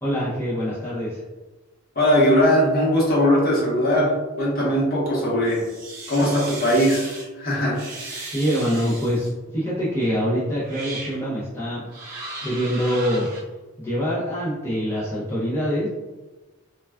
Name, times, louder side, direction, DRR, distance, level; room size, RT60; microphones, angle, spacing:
voice 1, 0.0-1.2 8.3-9.3 9.5-11.8 12.4-13.3 13.8-15.9, equal, 10° left, -10 dB, 0.5 m, -24 dB
voice 2, 2.0-5.6 6.1-7.8, equal, 40° left, -5 dB, 0.9 m, -20 dB
sound 1, 5.5-7.3 7.7-9.3 10.0-10.1 10.6-11.2 11.9-13.4, right 2 dB, 40° right, 0.7 m, -36 dB
3.2 x 2.2 x 2.3 m, 1.2 s
head